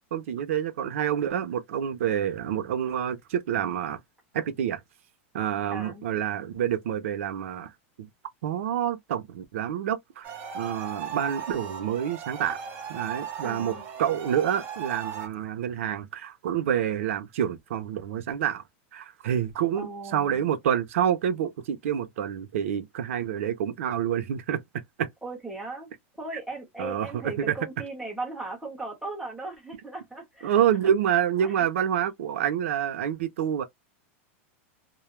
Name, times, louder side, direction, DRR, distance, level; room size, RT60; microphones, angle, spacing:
voice 1, 0.1-4.0 4.3-4.8 5.3-7.7 8.0-8.1 8.4-10.3 10.5-12.6 12.9-13.7 14.0-18.6 18.9-24.6 25.0-25.1 26.8-27.1 27.5-27.6 30.4-33.6, right 9 dB, 80° right, 0.6 m, -27 dB
voice 2, 5.7-6.0 13.4-13.8 19.7-20.5 25.2-25.9 26.2-30.9 31.4-31.6, right 2 dB, ahead, 1.0 m, -38 dB
sound 1, 10.2-15.3, right 7 dB, 25° right, 0.8 m, -37 dB
2.2 x 2.1 x 3.0 m
supercardioid pair, 170°, 7 cm